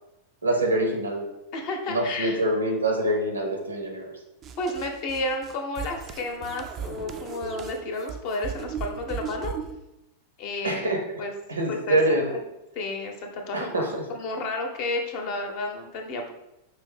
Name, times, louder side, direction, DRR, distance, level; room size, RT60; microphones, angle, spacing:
voice 1, 0.4-1.2 1.9-4.1 10.6-11.0 11.5-12.3 13.5-14.0, right 1 dB, 80° right, 3 dB, 0.8 m, -25 dB
voice 2, 1.5-2.4 4.6-9.5 10.4-10.8 11.2-11.3 11.7-12.4 12.8-16.3, left 2 dB, 45° left, 3 dB, 0.7 m, -31 dB
sound 1, 4.4-9.8, right 7 dB, 30° right, 0.4 m, -37 dB
4.9 x 2.6 x 3.7 m, 0.90 s
figure-of-eight pair, 90°, 0 cm